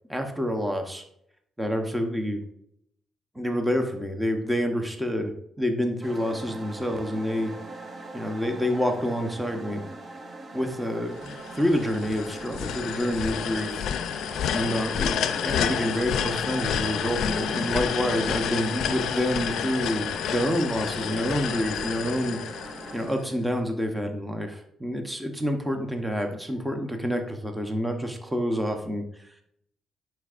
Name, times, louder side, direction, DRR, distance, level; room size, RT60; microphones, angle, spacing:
voice 1, 0.1-1.0 1.6-2.4 3.3-7.5 8.1-9.8 10.5-13.9 14.5-22.4 22.9-29.4, equal, 5° right, 4 dB, 0.9 m, -28 dB
sound 1, 6.0-23.1, right 2 dB, 35° right, 0.8 m, -41 dB
sound 2, 11.2-23.3, left 8 dB, 80° left, 0.4 m, -29 dB
10.5 x 4.5 x 2.5 m, 0.73 s
cardioid pair, 90°, 0 cm